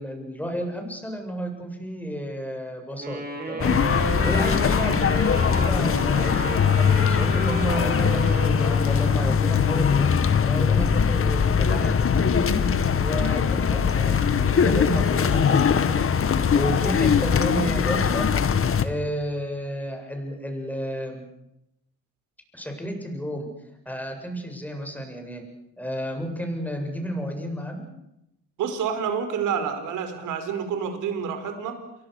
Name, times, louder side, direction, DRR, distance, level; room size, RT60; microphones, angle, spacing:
voice 1, 0.0-3.2 3.5-12.6 13.0-18.3 18.8-21.2 22.5-23.5 23.9-25.4 25.8-27.9, equal, 5° left, 4 dB, 7.9 m, -32 dB
Wind instrument woodwind instrument, 3.0-9.5, right 1 dB, 30° right, 7.0 m, -32 dB
sound 1, 3.6-18.8, left 6 dB, 45° left, 2.0 m, -21 dB
voice 2, 28.6-31.8, right 7 dB, 85° right, 8 dB, 5.1 m, -28 dB
29.0 x 23.5 x 6.8 m, 0.83 s
cardioid pair, 90°, 30 cm